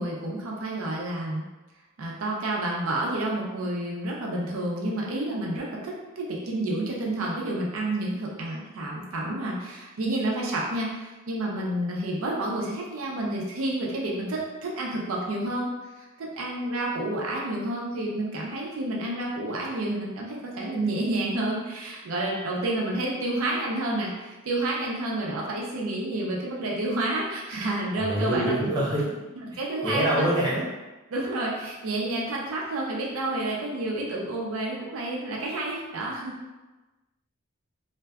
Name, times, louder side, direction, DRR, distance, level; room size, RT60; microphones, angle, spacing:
voice 1, 0.0-1.5 2.0-15.7 16.0-28.6 29.6-30.3 31.1-36.3, right 1 dB, 75° right, -3 dB, 0.5 m, -29 dB
voice 2, 27.9-29.1 29.8-30.6, right 1 dB, 20° right, -7 dB, 0.6 m, -25 dB
2.5 x 2.2 x 2.2 m, 1.1 s
head